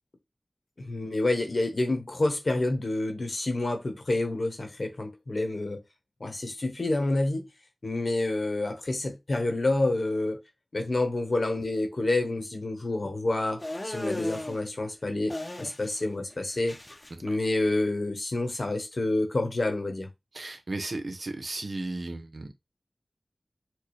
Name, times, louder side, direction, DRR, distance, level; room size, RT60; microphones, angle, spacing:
voice 1, 0.8-5.8 6.2-7.5 7.8-10.4 10.7-16.8 17.2-20.1, left 2 dB, 65° left, 1.0 m, -28 dB
sound 1, 13.6-14.6 15.3-16.0 16.3-17.1, left 1 dB, 35° left, 0.7 m, -36 dB
voice 2, 20.3-22.5, right 2 dB, 75° right, 0.7 m, -35 dB
4.5 x 2.1 x 3.1 m
wide cardioid pair, 45°, 0 cm